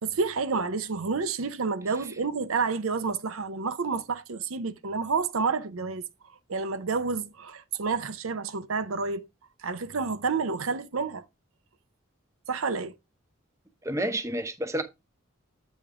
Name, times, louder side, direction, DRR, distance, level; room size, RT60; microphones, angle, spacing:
voice 1, 0.0-6.1 6.5-9.3 9.6-11.2 12.5-12.9, right 4 dB, 75° right, 0.7 m, -29 dB
voice 2, 13.8-14.8, right 1 dB, 15° right, 0.8 m, -29 dB
8.3 x 5.2 x 3.6 m
head